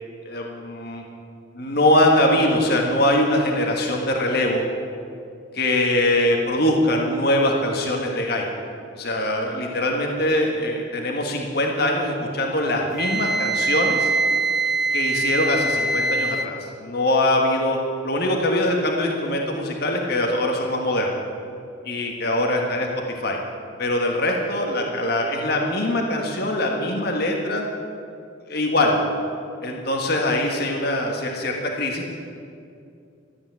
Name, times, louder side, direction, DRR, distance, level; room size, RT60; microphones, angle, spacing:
voice 1, 0.2-1.0 1.5-4.6 5.5-8.5 8.9-14.1 14.9-16.5 16.8-17.8 18.0-21.1 21.8-22.9 23.2-23.4 23.8-27.6 28.5-29.0 29.6-32.1, left 1 dB, 50° left, 1 dB, 1.5 m, -22 dB
Wind instrument woodwind instrument, 13.0-16.5, right 3 dB, ahead, 0.6 m, -23 dB
13.0 x 8.5 x 9.4 m, 2.5 s
head